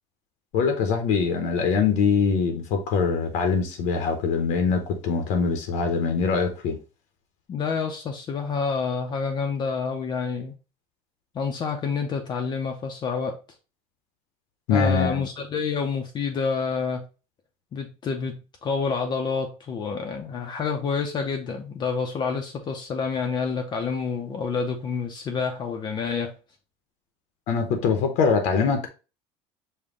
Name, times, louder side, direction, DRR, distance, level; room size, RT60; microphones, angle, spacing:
voice 1, 0.5-6.8 14.7-15.2 27.5-28.9, left 5 dB, 65° left, 0.8 m, -23 dB
voice 2, 7.5-10.5 11.3-13.4 14.7-17.0 17.7-26.3, left 5 dB, 30° left, 0.5 m, -28 dB
5.2 x 2.2 x 3.6 m
supercardioid pair, 125°, 14 cm